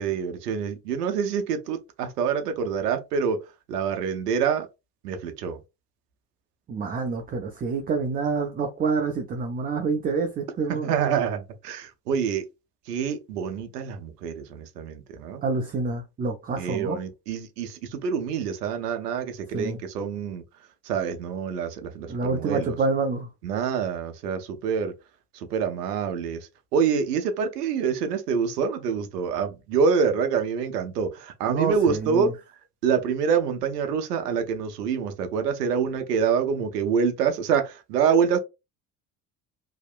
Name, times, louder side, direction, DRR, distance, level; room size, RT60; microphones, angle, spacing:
voice 1, 0.0-3.4 3.7-4.7 5.0-5.6 10.7-12.4 12.9-15.4 16.6-20.4 20.8-22.8 23.4-24.9 25.3-26.4 26.7-32.3 32.8-38.4, right 6 dB, 80° right, 0.6 m, -26 dB
voice 2, 6.7-10.9 15.4-17.0 19.5-19.8 22.1-23.3 31.5-32.3, right 4 dB, 20° right, 0.4 m, -27 dB
2.8 x 2.0 x 2.4 m
hypercardioid pair, 60°, 47 cm